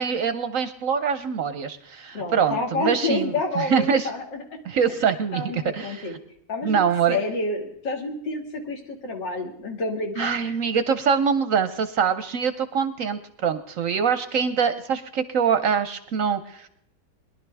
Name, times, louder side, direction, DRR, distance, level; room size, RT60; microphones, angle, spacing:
voice 1, 0.0-4.1 4.6-6.1 6.6-7.2 10.2-16.7, right 6 dB, 60° right, 11 dB, 0.9 m, -24 dB
voice 2, 2.1-4.4 5.3-6.1 6.5-10.5, left 2 dB, 85° left, 1 dB, 2.8 m, -29 dB
21.5 x 11.5 x 3.4 m, 0.71 s
omnidirectional pair, 1.9 m